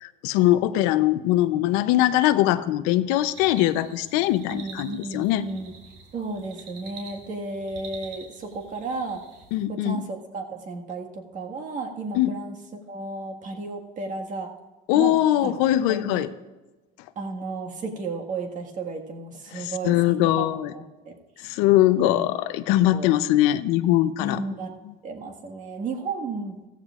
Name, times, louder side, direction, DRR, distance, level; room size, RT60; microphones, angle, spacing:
voice 1, 0.0-5.4 9.5-10.0 12.1-12.4 14.9-16.3 19.5-20.7 21.4-24.5, left 14 dB, 80° left, 12 dB, 0.7 m, -21 dB
sound 1, 3.3-9.6, right 5 dB, 70° right, 3.6 m, -46 dB
voice 2, 4.5-5.7 6.1-9.2 9.7-14.5 14.9-16.2 17.2-21.5 22.0-22.2 22.8-23.1 24.2-24.8 25.0-26.6, right 3 dB, 35° right, 1 dB, 1.8 m, -34 dB
16.5 x 14.5 x 2.5 m, 1.2 s
cardioid pair, 140°, 21 cm